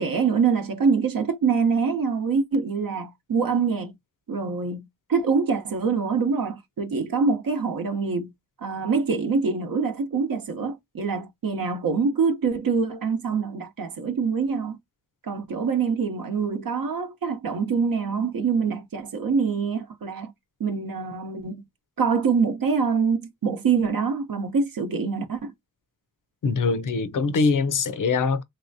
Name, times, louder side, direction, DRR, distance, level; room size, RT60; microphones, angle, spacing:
voice 1, 0.0-3.9 4.3-8.3 8.6-14.8 15.2-20.3 20.6-21.6 22.0-25.5, right 5 dB, 70° right, 0.7 m, -25 dB
voice 2, 26.4-28.4, left 4 dB, 60° left, 0.5 m, -23 dB
3.2 x 2.7 x 2.6 m
wide cardioid pair, 100°, 36 cm